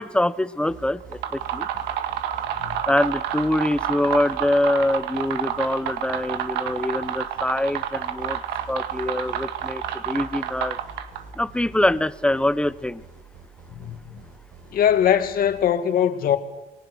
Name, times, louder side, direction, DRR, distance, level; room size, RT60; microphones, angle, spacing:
voice 1, 0.0-1.7 2.8-8.4 8.7-10.8 11.4-13.0, left 1 dB, 5° left, 0.9 m, -24 dB
sound 1, 0.7-15.6, right 4 dB, 55° right, 5.7 m, -46 dB
sound 2, 1.0-11.3, right 10 dB, 85° right, 2.1 m, -29 dB
voice 2, 13.7-14.3 14.7-16.4, left 9 dB, 60° left, 2.3 m, -21 dB
29.5 x 20.5 x 6.3 m
cardioid pair, 110°, 17 cm